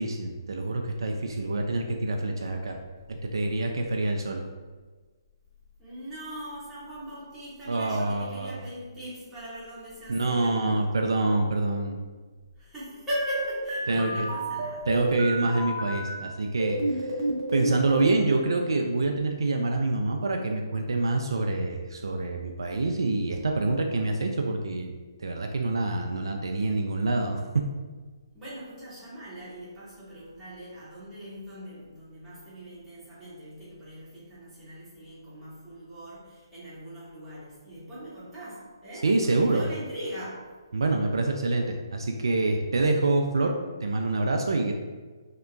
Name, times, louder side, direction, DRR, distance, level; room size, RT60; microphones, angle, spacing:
voice 1, 0.0-2.8 3.1-4.4 7.7-8.6 10.1-12.0 13.9-14.3 14.9-17.1 17.5-24.9 25.2-27.4 39.0-39.6 40.7-43.5 43.8-44.7, right 2 dB, 70° right, 3 dB, 0.3 m, -26 dB
voice 2, 5.8-10.7 12.6-14.9 28.3-40.5 42.8-42.9, right 1 dB, 10° right, -11 dB, 1.3 m, -40 dB
sound 1, 13.1-16.1 16.6-18.2, right 1 dB, 35° right, 0.7 m, -31 dB
3.3 x 2.8 x 2.3 m, 1.4 s
figure-of-eight pair, 140°, 2 cm